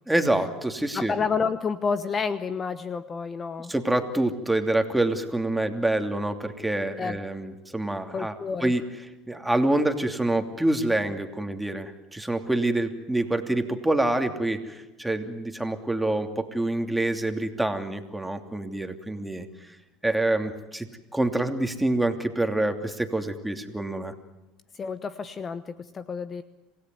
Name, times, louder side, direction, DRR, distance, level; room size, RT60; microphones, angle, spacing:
voice 1, 0.1-1.1 3.7-8.3 8.6-8.8 9.3-19.7 20.0-24.1, right 1 dB, 5° right, 5 dB, 2.8 m, -26 dB
voice 2, 0.9-3.7 7.0-7.2 8.1-8.7 24.7-26.4, left 5 dB, 35° left, 13 dB, 1.0 m, -29 dB
27.0 x 17.5 x 9.5 m, 1.1 s
hypercardioid pair, 80°, 0 cm